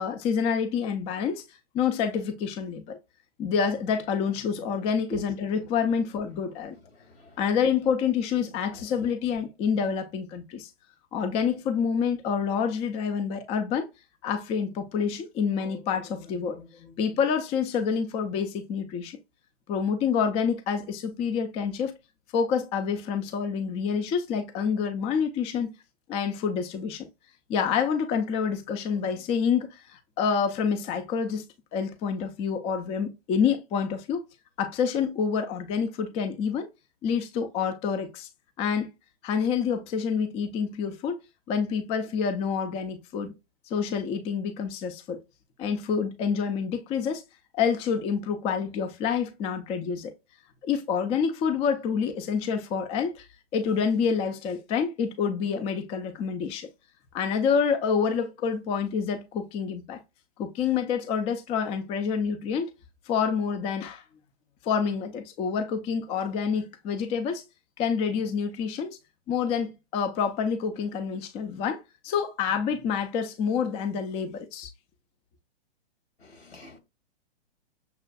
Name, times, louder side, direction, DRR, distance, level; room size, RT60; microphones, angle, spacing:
voice 1, 0.0-1.4 1.7-3.0 3.4-6.8 7.4-10.7 11.1-13.9 14.2-19.2 19.7-22.0 22.3-25.7 26.1-27.1 27.5-31.4 31.7-34.2 34.6-36.7 37.0-38.3 38.6-38.9 39.2-41.2 41.5-43.3 43.7-45.2 45.6-47.2 47.5-50.1 50.6-53.3 53.5-56.7 57.1-60.0 60.4-62.7 63.1-64.0 64.6-67.4 67.8-69.0 69.3-74.7, left 6 dB, 20° left, 0.4 m, -27 dB
voice 2, 76.2-76.8, right 2 dB, 85° left, 2.1 m, -41 dB
6.5 x 2.4 x 2.2 m
hypercardioid pair, 130°, 31 cm